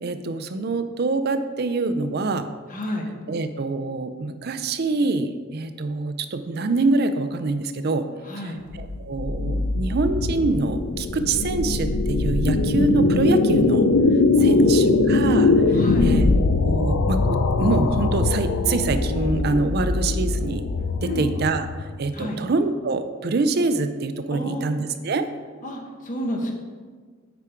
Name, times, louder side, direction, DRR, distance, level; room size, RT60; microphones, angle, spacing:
voice 1, 0.0-2.6 3.3-8.1 8.4-13.8 14.4-16.3 16.6-20.6 21.0-25.3, right 3 dB, 45° right, 9 dB, 0.4 m, -25 dB
voice 2, 2.7-3.1 8.2-8.6 14.4-15.0 15.7-16.1 21.0-21.3 22.1-22.4 24.3-24.6 25.6-26.6, left 1 dB, 35° left, 1 dB, 1.0 m, -30 dB
sound 1, 8.7-21.9, left 3 dB, 80° left, 0.5 m, -21 dB
8.4 x 5.0 x 4.4 m, 1.5 s
head